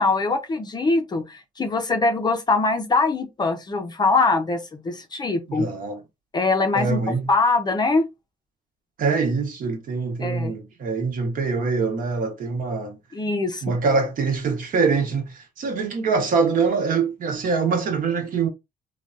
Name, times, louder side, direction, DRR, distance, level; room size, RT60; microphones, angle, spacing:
voice 1, 0.0-5.7 6.3-7.0 7.3-8.1 10.2-10.5 13.1-13.7, left 3 dB, 25° left, 0.5 m, -22 dB
voice 2, 5.5-6.0 6.7-7.3 9.0-13.0 13.6-18.5, right 4 dB, 55° right, 1.1 m, -24 dB
3.3 x 2.2 x 2.5 m
cardioid pair, 110°, 17 cm